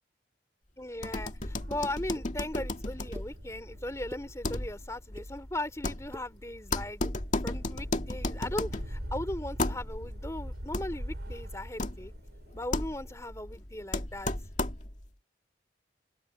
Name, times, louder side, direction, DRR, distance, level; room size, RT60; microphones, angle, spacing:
voice 1, 0.8-7.0 7.4-12.1 12.5-14.3, left 1 dB, 15° left, 3.0 m, -38 dB
sound 1, 1.0-15.1, left 2 dB, 40° left, 2.2 m, -35 dB
sound 2, 1.4-13.2, equal, 70° right, 6.9 m, -44 dB
sound 3, 2.1-2.3 3.1-3.3 3.9-4.3 4.9-5.3 5.9-6.3 6.9-7.2, equal, 15° right, 1.9 m, -45 dB
head